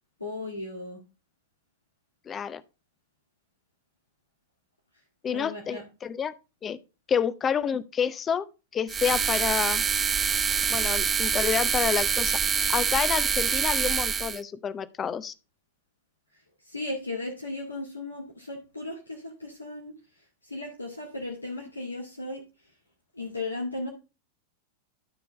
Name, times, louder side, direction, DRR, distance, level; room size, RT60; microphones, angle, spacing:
voice 1, 0.2-1.0 5.3-5.8 16.3-22.7 23.1-23.9, left 2 dB, 80° left, 2.0 m, -36 dB
voice 2, 2.3-2.6 5.2-6.3 6.6-6.8 7.1-8.5 8.7-9.8 10.7-12.4 12.7-15.3, left 7 dB, 25° left, 0.6 m, -28 dB
sound 1, 8.9-14.4, right 6 dB, 20° right, 0.4 m, -25 dB
12.5 x 4.7 x 3.7 m
figure-of-eight pair, 90°, 0 cm